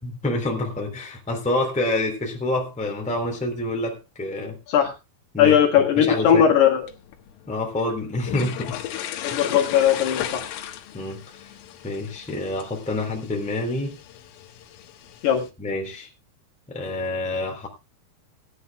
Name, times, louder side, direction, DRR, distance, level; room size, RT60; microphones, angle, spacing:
voice 1, 0.0-4.6 5.3-5.6 5.9-6.4 7.5-8.8 9.3-9.4 10.9-11.4 11.8-14.0 15.6-16.1 16.7-17.7, left 2 dB, ahead, 1 dB, 2.3 m, -27 dB
voice 2, 5.4-6.9 9.2-10.5 15.2-15.5, left 9 dB, 65° left, 1 dB, 3.7 m, -18 dB
sound 1, 6.7-15.5, left 11 dB, 85° left, 3.9 m, -37 dB
19.5 x 11.0 x 2.3 m, 0.27 s
omnidirectional pair, 5.6 m